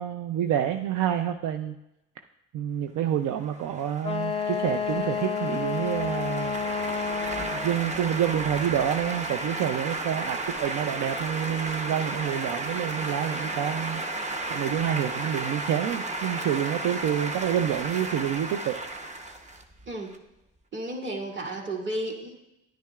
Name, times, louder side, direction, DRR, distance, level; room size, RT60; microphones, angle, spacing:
voice 1, 0.0-1.7 2.5-6.6 7.5-14.0 14.5-18.8, right 10 dB, 80° right, 6 dB, 0.5 m, -28 dB
sound 1, 3.5-20.2, right 2 dB, 25° right, 0.8 m, -33 dB
Wind instrument woodwind instrument, 4.0-7.8, left 6 dB, 20° left, 0.5 m, -30 dB
voice 2, 20.7-22.3, right 1 dB, 40° right, -1 dB, 2.0 m, -33 dB
10.0 x 10.0 x 2.4 m, 0.90 s
cardioid pair, 90°, 30 cm